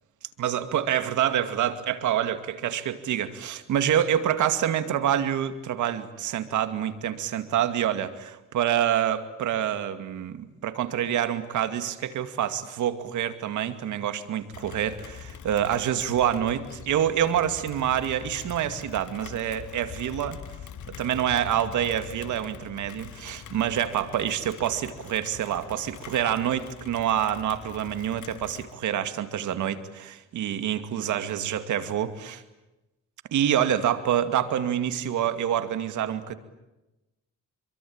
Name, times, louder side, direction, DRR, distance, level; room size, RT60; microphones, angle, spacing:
voice 1, 0.4-20.4 21.0-32.4 33.3-36.3, right 10 dB, 75° right, 10 dB, 2.4 m, -27 dB
Rain, 14.5-28.7, left 8 dB, 75° left, 2.4 m, -43 dB
27.5 x 24.0 x 8.9 m, 0.98 s
cardioid pair, 90°, 30 cm